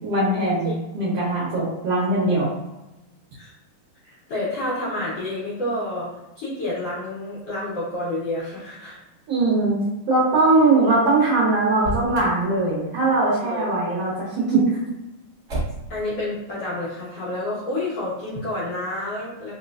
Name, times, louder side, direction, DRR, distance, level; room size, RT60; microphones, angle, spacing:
voice 1, 0.0-2.5 9.3-9.8 10.1-14.8, right 2 dB, 65° right, -7 dB, 1.7 m, -20 dB
voice 2, 4.0-6.1 6.4-9.0 13.4-13.6 15.9-19.5, left 1 dB, 60° left, -8 dB, 1.8 m, -29 dB
Motor vehicle (road), 11.7-12.4 15.5-16.0, right 1 dB, 85° right, 0.6 m, -29 dB
4.8 x 3.0 x 2.4 m, 0.99 s
omnidirectional pair, 3.8 m